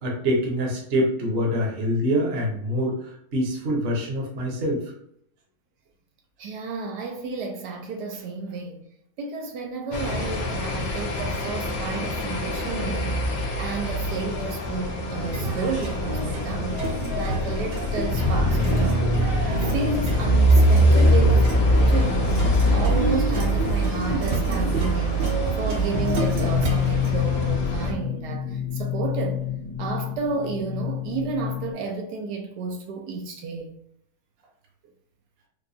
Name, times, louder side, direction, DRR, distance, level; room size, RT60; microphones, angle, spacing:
voice 1, 0.0-2.9 3.3-4.8, equal, 45° right, 1.0 m, -25 dB
voice 2, 6.4-8.8 9.2-22.4 22.7-29.4 29.8-33.7, right 4 dB, 80° right, 1.2 m, -32 dB
sound 1, 9.9-27.9, equal, 65° left, 1.1 m, -23 dB
sound 2, 15.2-27.1, right 3 dB, 65° right, 0.5 m, -31 dB
sound 3, 25.9-31.7, left 11 dB, 85° left, 1.7 m, -28 dB
4.8 x 2.3 x 2.6 m
omnidirectional pair, 1.8 m